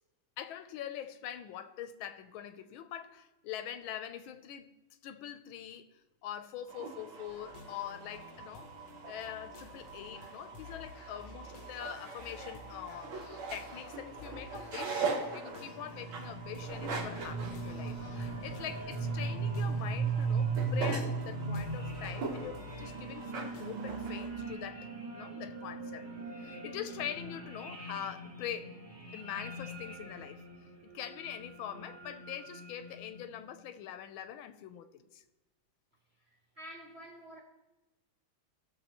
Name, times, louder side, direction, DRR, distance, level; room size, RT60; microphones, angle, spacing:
voice 1, 0.4-4.7 5.0-5.9 6.2-8.7 9.1-26.1 26.4-28.7 29.1-30.4 30.8-35.2, left 10 dB, 80° left, 1.4 m, -43 dB
sound 1, 6.7-24.3, right 4 dB, 75° right, 2.0 m, -42 dB
sound 2, 7.3-24.6, left 3 dB, 60° left, 0.8 m, -53 dB
sound 3, 15.2-33.5, right 4 dB, 25° right, 1.2 m, -38 dB
voice 2, 36.2-37.4, equal, 50° right, 0.8 m, -49 dB
17.5 x 6.5 x 2.9 m
omnidirectional pair, 2.3 m